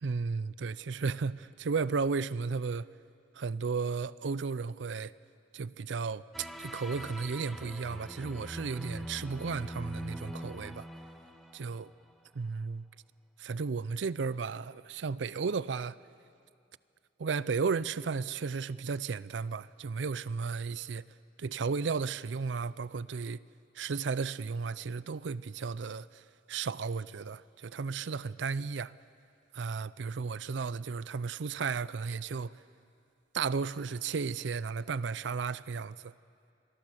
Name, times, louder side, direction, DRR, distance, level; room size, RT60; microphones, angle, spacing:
voice 1, 0.0-2.9 3.3-5.1 5.5-10.9 11.5-11.9 12.3-12.8 13.4-16.0 17.2-21.0 21.4-23.4 23.8-26.2 26.5-28.9 29.5-32.6 33.3-36.1, right 5 dB, 70° right, 0.5 m, -34 dB
Kojiro's Trips (slow), 6.3-12.1, equal, ahead, 1.4 m, -43 dB
25.5 x 21.5 x 7.8 m
head